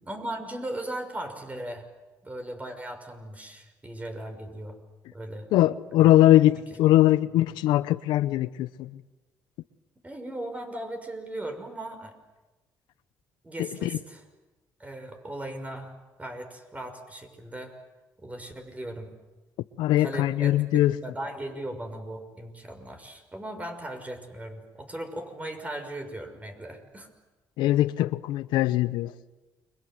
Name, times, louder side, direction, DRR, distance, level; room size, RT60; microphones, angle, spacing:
voice 1, 0.0-1.8 2.2-4.8 5.1-5.5 6.0-6.1 10.0-12.1 13.4-14.2 14.8-17.7 18.2-19.1 20.0-27.1, right 1 dB, 20° right, 5 dB, 6.3 m, -38 dB
voice 2, 5.5-9.0 13.6-13.9 19.8-20.9 27.6-29.1, left 14 dB, 90° left, 15 dB, 0.9 m, -21 dB
30.0 x 24.0 x 7.9 m, 1.1 s
cardioid pair, 85°, 8 cm